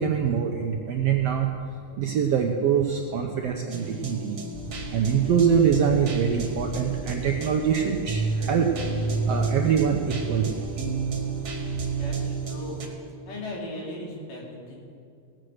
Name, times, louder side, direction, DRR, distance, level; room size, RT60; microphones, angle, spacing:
voice 1, 0.0-1.5 2.0-4.4 4.9-8.7 9.3-10.6, right 7 dB, 75° right, 2 dB, 1.4 m, -24 dB
sound 1, 3.7-12.9, right 4 dB, 45° right, 1.7 m, -31 dB
sound 2, 4.5-12.2, right 1 dB, 15° left, 1.1 m, -38 dB
voice 2, 11.8-12.9 13.3-14.8, left 2 dB, 85° left, -3 dB, 4.3 m, -37 dB
18.0 x 7.8 x 6.4 m, 2.3 s
omnidirectional pair, 3.7 m